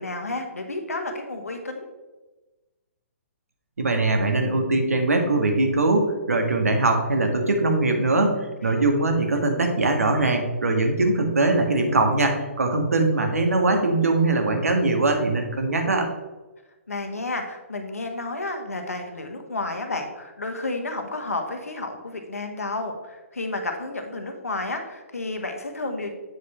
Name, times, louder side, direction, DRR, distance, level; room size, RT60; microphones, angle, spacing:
voice 1, 0.0-1.9 8.6-8.8 16.9-26.1, left 2 dB, 85° left, 5 dB, 1.4 m, -31 dB
voice 2, 3.8-16.1, right 2 dB, 80° right, 4 dB, 1.6 m, -21 dB
8.0 x 4.9 x 4.3 m, 1.1 s
figure-of-eight pair, 135°, 8 cm